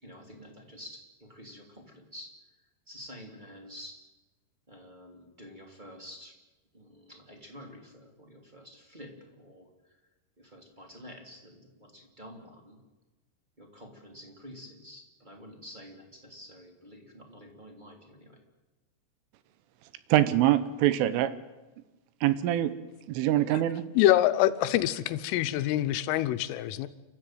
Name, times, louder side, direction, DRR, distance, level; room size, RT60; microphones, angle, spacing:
voice 1, 0.0-4.0 4.7-6.3 6.7-10.1 10.4-12.8 13.6-18.4, equal, 15° right, 2 dB, 2.1 m, -49 dB
voice 2, 20.1-21.3 22.2-22.7 23.1-23.8, right 13 dB, 80° right, 14 dB, 3.5 m, -24 dB
voice 3, 24.0-26.9, left 13 dB, 85° left, 12 dB, 3.4 m, -25 dB
30.0 x 13.5 x 9.2 m, 1.1 s
omnidirectional pair, 5.8 m